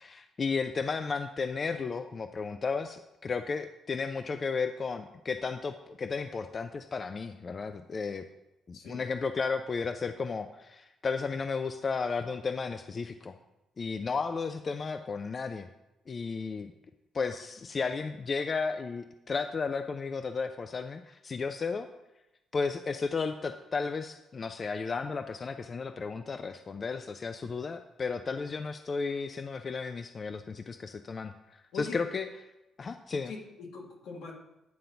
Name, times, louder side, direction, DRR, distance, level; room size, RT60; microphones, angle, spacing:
voice 1, 0.0-8.2 8.7-13.3 13.8-15.7 16.1-16.7 17.1-21.9 22.5-32.3 32.8-33.3, left 4 dB, 40° left, 8 dB, 0.4 m, -34 dB
voice 2, 8.7-9.1 31.7-32.0 33.2-34.3, left 4 dB, 85° left, -2 dB, 1.8 m, -42 dB
9.4 x 3.8 x 5.7 m, 0.94 s
cardioid pair, 90°, 0 cm